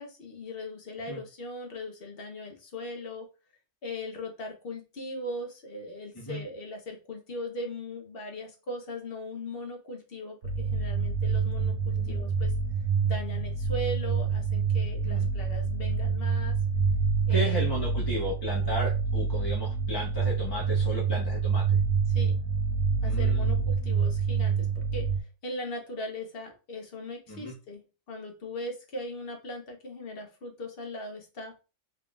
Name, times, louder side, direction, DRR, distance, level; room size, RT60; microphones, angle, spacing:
voice 1, 0.0-3.3 3.8-12.5 13.0-16.5 17.3-17.9 22.1-22.4 23.0-27.8 28.1-31.6, left 1 dB, 50° left, 3 dB, 1.1 m, -39 dB
sound 1, 10.4-25.2, right 5 dB, 65° right, 1.3 m, -27 dB
voice 2, 17.3-21.8 23.0-23.7 27.3-27.5, left 1 dB, 20° left, -5 dB, 1.0 m, -34 dB
3.9 x 3.5 x 2.3 m, 0.30 s
omnidirectional pair, 1.4 m